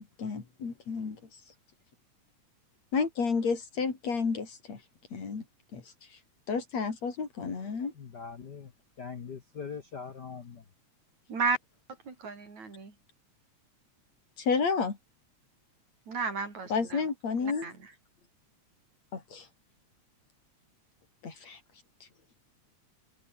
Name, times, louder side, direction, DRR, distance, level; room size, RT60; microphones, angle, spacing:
voice 1, 0.2-1.2 2.9-4.8 5.1-5.4 5.7-5.8 6.5-7.9 14.4-15.0 16.7-17.7 19.1-19.5 21.2-21.6, left 5 dB, 60° left, 5.2 m, -31 dB
voice 2, 8.0-8.7 9.0-10.6, left 6 dB, 40° left, 1.7 m, -41 dB
voice 3, 12.1-12.9 16.1-17.0 17.4-17.7, right 4 dB, 70° right, 6.4 m, -33 dB
omnidirectional pair, 3.4 m